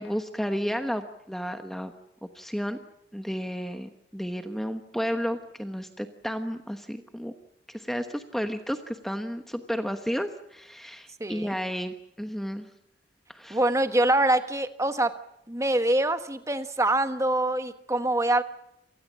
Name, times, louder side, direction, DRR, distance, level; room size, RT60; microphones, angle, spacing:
voice 1, 0.0-1.9 2.3-2.8 3.1-7.3 7.7-12.7 13.3-13.6, equal, ahead, 7 dB, 1.1 m, -32 dB
voice 2, 11.2-11.5 13.5-15.1 15.5-18.4, right 1 dB, 15° right, 9 dB, 1.3 m, -24 dB
27.5 x 19.5 x 7.5 m, 0.82 s
head